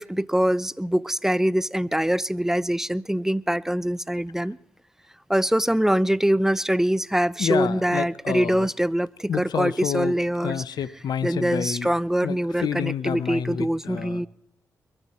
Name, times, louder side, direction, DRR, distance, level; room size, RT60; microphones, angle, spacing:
voice 1, 0.0-4.6 5.3-10.6 11.2-14.3, right 1 dB, 5° right, 21 dB, 0.6 m, -24 dB
voice 2, 7.4-8.7 9.3-10.2 10.4-11.9 12.2-14.3, left 8 dB, 70° left, 16 dB, 0.8 m, -29 dB
22.0 x 12.0 x 4.3 m, 0.73 s
supercardioid pair, 45°, 7 cm